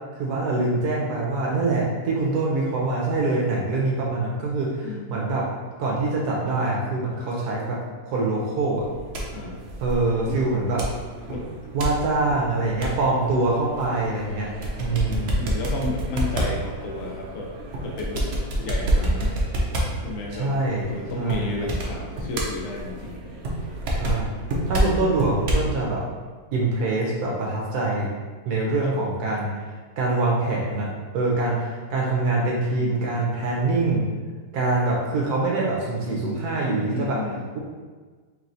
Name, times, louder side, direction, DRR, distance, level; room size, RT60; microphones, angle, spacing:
voice 1, 0.2-5.4 5.8-7.8 8.0-8.9 9.8-10.8 11.7-14.5 14.8-15.4 20.3-20.8 21.2-21.5 24.0-24.3 24.7-26.0 26.5-28.1 28.5-29.5 30.0-30.9 31.1-34.0 34.5-37.2, right 2 dB, 75° right, -3 dB, 1.2 m, -24 dB
voice 2, 4.8-5.2 9.3-9.6 11.3-11.5 15.3-17.5 17.8-18.3 18.6-19.7 20.0-20.5 20.8-23.3 27.3-27.4 28.8-29.0 32.8-33.3 36.9-37.4, left 3 dB, 60° left, -1 dB, 1.0 m, -33 dB
sound 1, 8.8-25.7, right 1 dB, 55° right, 0.7 m, -29 dB
4.5 x 3.3 x 2.6 m, 1.4 s
omnidirectional pair, 1.8 m